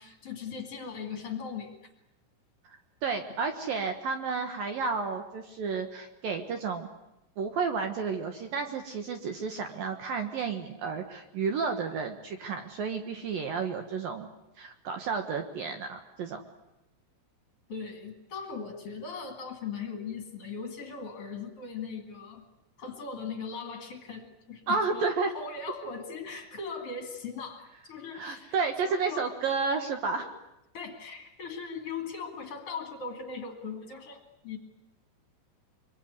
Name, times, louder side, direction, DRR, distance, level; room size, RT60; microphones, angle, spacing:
voice 1, 0.0-1.8 17.7-22.5 22.8-28.6 28.9-29.3 30.2-30.3 30.7-34.6, left 5 dB, 40° left, 4 dB, 2.2 m, -39 dB
voice 2, 3.0-6.9 7.4-14.3 14.6-16.4 24.7-25.3 28.1-30.3, right 5 dB, 70° right, 6 dB, 2.2 m, -31 dB
25.0 x 23.5 x 9.6 m, 0.87 s
omnidirectional pair, 6.0 m